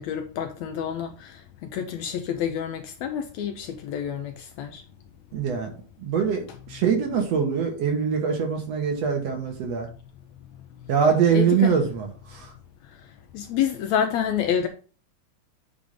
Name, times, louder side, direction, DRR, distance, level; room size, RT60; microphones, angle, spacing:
voice 1, 0.0-1.4 1.7-4.8 11.3-11.7 13.3-14.7, left 8 dB, 75° left, 1.8 m, -28 dB
voice 2, 5.3-5.7 6.0-6.4 6.7-9.9 10.9-12.1 12.3-12.5, right 6 dB, 60° right, 2.3 m, -23 dB
8.6 x 3.5 x 5.3 m
omnidirectional pair, 3.6 m